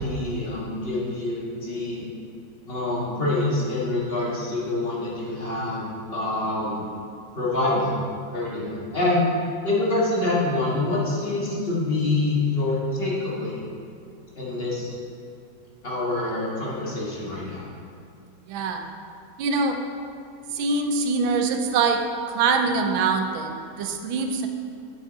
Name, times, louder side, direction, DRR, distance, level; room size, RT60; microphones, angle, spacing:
voice 1, 0.0-2.1 2.7-6.8 7.3-8.0 8.3-9.2 9.6-13.6 14.4-14.9 15.8-17.7, left 2 dB, 30° left, -6 dB, 1.7 m, -26 dB
voice 2, 18.5-18.9 19.4-19.8 20.5-22.1 22.3-24.5, right 4 dB, 90° right, 5 dB, 1.5 m, -24 dB
8.4 x 7.1 x 4.0 m, 2.5 s
omnidirectional pair, 2.1 m